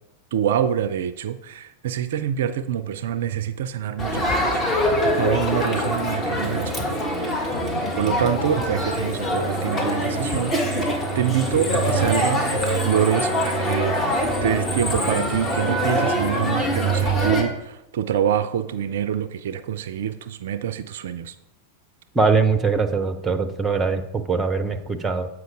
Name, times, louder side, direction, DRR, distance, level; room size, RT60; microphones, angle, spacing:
voice 1, 0.3-7.4 7.9-21.3, right 9 dB, 55° right, 13 dB, 0.4 m, -26 dB
Crowd, 4.0-17.4, equal, 20° left, 1.5 m, -23 dB
voice 2, 22.1-25.3, right 4 dB, 15° right, 8 dB, 0.8 m, -22 dB
8.0 x 4.8 x 4.8 m, 0.90 s
figure-of-eight pair, 90°, 0 cm